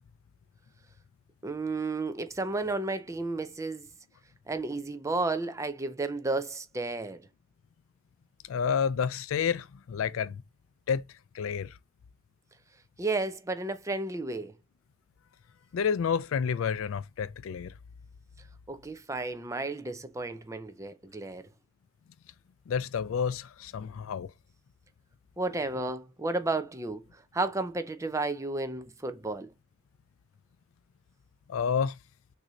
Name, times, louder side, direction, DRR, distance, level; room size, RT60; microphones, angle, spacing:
voice 1, 1.4-3.9 4.5-7.3 13.0-14.5 18.7-21.4 25.4-27.0 27.3-29.5, right 2 dB, 15° right, 0.4 m, -32 dB
voice 2, 8.5-10.4 10.9-11.0 11.3-11.8 15.7-17.7 22.7-24.3 31.5-32.0, left 7 dB, 70° left, 0.3 m, -29 dB
6.3 x 2.7 x 3.0 m
head